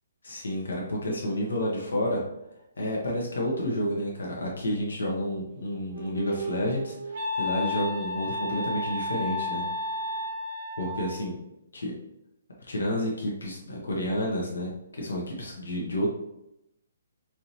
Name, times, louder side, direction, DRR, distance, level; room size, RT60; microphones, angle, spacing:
voice 1, 0.2-2.2 2.8-9.6 10.8-11.4 11.7-11.9 12.6-16.1, equal, 80° left, -2 dB, 0.9 m, -30 dB
Wind instrument woodwind instrument, 5.7-11.2, left 2 dB, 45° right, 0.6 m, -33 dB
4.6 x 2.8 x 2.8 m, 0.89 s
hypercardioid pair, 140°, 0 cm